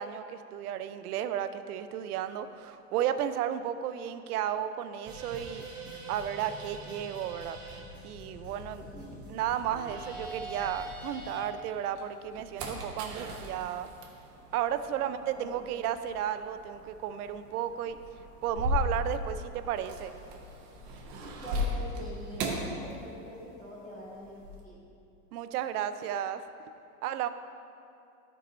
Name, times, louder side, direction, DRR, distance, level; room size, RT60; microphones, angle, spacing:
voice 1, 0.0-5.7 6.1-7.6 8.0-8.9 9.3-13.9 14.5-18.0 18.4-20.1 25.3-26.4 27.0-27.3, right 10 dB, 75° right, 11 dB, 0.6 m, -33 dB
sound 1, 5.1-11.5, right 2 dB, 10° right, 0.7 m, -43 dB
sound 2, 8.6-11.3 11.8-23.6 23.8-24.6, left 1 dB, 45° right, 1.2 m, -38 dB
voice 2, 8.8-9.2 14.9-15.5 21.2-24.8, equal, 15° left, -13 dB, 2.1 m, -44 dB
13.0 x 4.7 x 4.0 m, 2.6 s
supercardioid pair, 170°, 45 cm